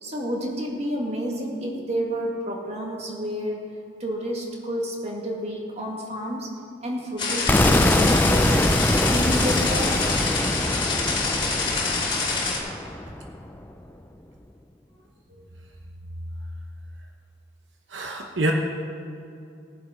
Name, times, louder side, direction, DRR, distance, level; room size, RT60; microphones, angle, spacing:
voice 1, 0.0-3.7 4.0-6.5 6.8-10.1, equal, 35° right, -1 dB, 1.9 m, -30 dB
sound 1, 7.2-12.6, left 3 dB, 30° left, 2.7 m, -26 dB
sound 2, 7.5-13.4, left 1 dB, 10° left, 0.4 m, -23 dB
voice 2, 17.9-18.5, right 1 dB, 75° right, 1 dB, 1.0 m, -27 dB
18.5 x 7.3 x 5.1 m, 2.6 s
head